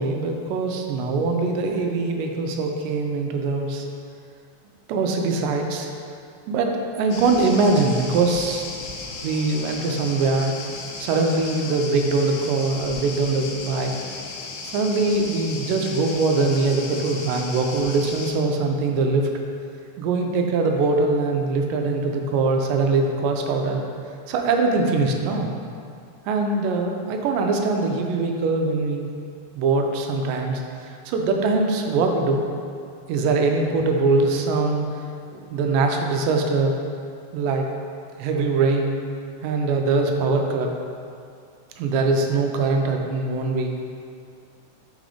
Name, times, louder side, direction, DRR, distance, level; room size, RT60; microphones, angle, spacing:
voice 1, 0.0-3.9 4.9-5.9 6.5-8.7 9.2-10.5 11.0-13.9 14.6-19.3 20.0-23.8 24.3-25.5 26.3-29.1 29.5-32.5 33.1-34.9 35.3-36.7 37.3-37.6 38.2-39.0 39.4-40.7 41.8-43.7, right 3 dB, 90° right, 3 dB, 2.3 m, -22 dB
sound 1, 7.1-18.3, left 3 dB, 85° left, 2.2 m, -35 dB
5.8 x 3.9 x 4.9 m, 2.4 s
omnidirectional pair, 3.8 m